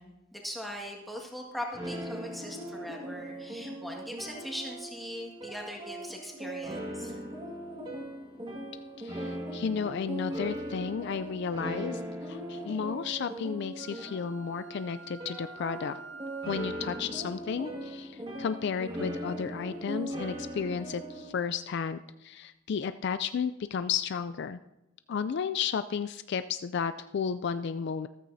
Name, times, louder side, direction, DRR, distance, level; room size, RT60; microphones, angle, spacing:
voice 1, 0.0-7.2, equal, ahead, -1 dB, 1.7 m, -40 dB
sound 1, 1.7-21.3, right 1 dB, 20° right, 1.9 m, -39 dB
voice 2, 9.0-16.0 16.5-24.6 25.1-28.1, left 6 dB, 50° left, 12 dB, 0.3 m, -33 dB
Wind instrument woodwind instrument, 13.8-17.2, right 4 dB, 55° right, 0.6 m, -48 dB
14.0 x 13.5 x 2.7 m, 0.94 s
head